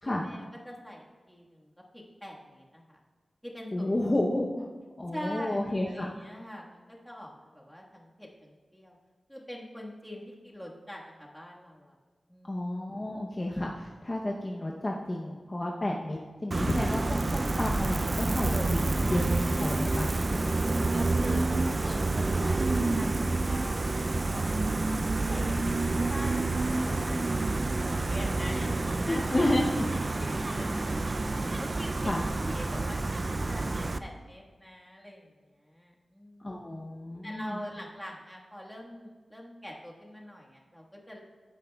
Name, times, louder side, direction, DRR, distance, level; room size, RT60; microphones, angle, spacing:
voice 1, 0.0-3.0 3.4-3.9 5.1-9.0 9.3-11.9 12.3-12.6 18.5-18.8 19.5-21.5 21.8-24.9 25.2-29.7 30.2-32.1 32.4-36.6 37.2-41.2, equal, 5° left, -3 dB, 1.6 m, -44 dB
voice 2, 3.7-4.7 5.0-6.1 12.5-20.1 29.0-29.7 32.0-32.2 36.4-37.6, left 1 dB, 30° left, -2 dB, 0.8 m, -31 dB
Gull seagull, 16.5-34.0, right 2 dB, 35° right, 0.4 m, -28 dB
15.0 x 8.9 x 2.3 m, 1.4 s
wide cardioid pair, 105°, 0 cm